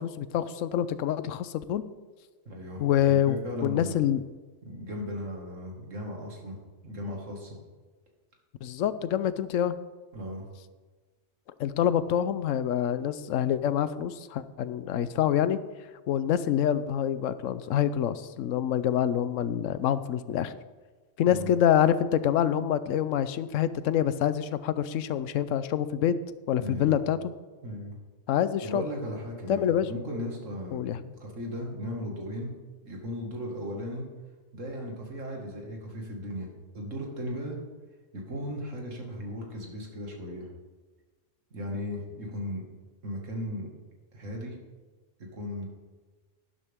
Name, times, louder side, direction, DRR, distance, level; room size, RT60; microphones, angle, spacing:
voice 1, 0.0-1.8 2.8-4.2 8.6-9.8 11.6-15.6 16.1-20.5 21.2-26.2 26.5-27.2 28.3-28.9 29.5-29.9 30.7-31.1, left 10 dB, 85° left, 14 dB, 1.0 m, -26 dB
voice 2, 2.5-4.1 4.6-6.6 6.8-7.6 10.1-10.4 21.2-21.5 26.6-27.0 27.6-28.0 28.6-30.8 31.2-32.5 32.8-34.0 34.5-37.6 38.1-40.5 41.5-42.6 43.0-43.7 44.1-44.6 45.2-45.7, equal, 85° right, 0 dB, 2.4 m, -36 dB
11.5 x 11.0 x 3.6 m, 1.3 s
omnidirectional pair, 1.3 m